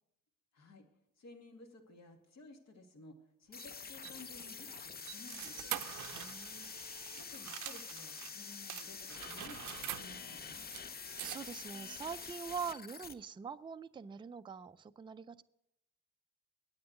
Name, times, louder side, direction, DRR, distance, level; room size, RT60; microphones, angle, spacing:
voice 1, 0.5-0.8 1.2-5.7 7.2-10.7, left 2 dB, 60° left, 4 dB, 2.3 m, -55 dB
sound 1, 3.5-13.1, left 5 dB, 30° left, 0.7 m, -47 dB
sound 2, 3.6-8.3 8.7-11.8, right 14 dB, 80° right, 0.6 m, -46 dB
voice 2, 6.1-6.8 11.2-15.4, right 6 dB, 15° right, 11 dB, 0.4 m, -44 dB
9.4 x 8.8 x 8.0 m, 0.82 s
cardioid pair, 90°, 30 cm